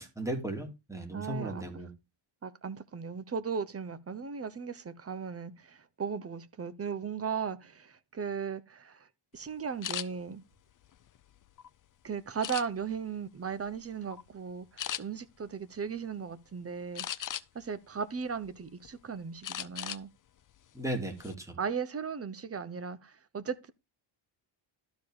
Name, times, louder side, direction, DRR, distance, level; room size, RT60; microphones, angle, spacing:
voice 1, 0.0-1.9 20.7-21.5, right 1 dB, 5° right, 2.9 m, -36 dB
voice 2, 1.1-1.8 2.4-9.1 9.3-10.4 12.0-17.0 17.5-20.1 21.6-23.7, right 6 dB, 30° right, 0.9 m, -37 dB
sound 1, 9.8-10.1 10.7-11.7 12.4-13.0 13.5-13.8 14.1-14.3 14.8-15.0 17.0-17.7 18.2-18.9 19.4-20.0 20.4-20.6 21.0-21.3, left 10 dB, 40° left, 0.6 m, -38 dB
12.5 x 4.7 x 4.9 m
cardioid pair, 125°, 49 cm